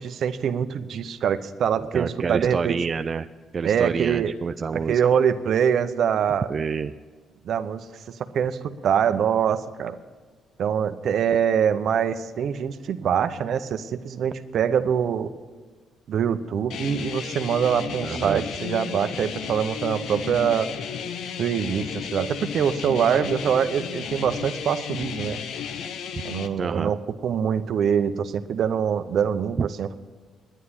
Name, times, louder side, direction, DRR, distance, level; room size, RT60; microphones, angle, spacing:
voice 1, 0.0-2.8 3.6-4.3 4.7-6.5 7.4-10.0 10.6-15.3 16.1-20.7 21.4-25.4 26.2-30.0, right 8 dB, 65° right, 11 dB, 0.7 m, -24 dB
voice 2, 1.8-3.3 3.5-5.0 6.5-6.9 18.0-18.4 26.6-26.9 29.6-29.7, right 5 dB, 40° right, 10 dB, 0.3 m, -28 dB
sound 1, 16.7-26.5, left 7 dB, 75° left, 0.8 m, -33 dB
10.0 x 9.4 x 9.9 m, 1.4 s
cardioid pair, 90°, 0 cm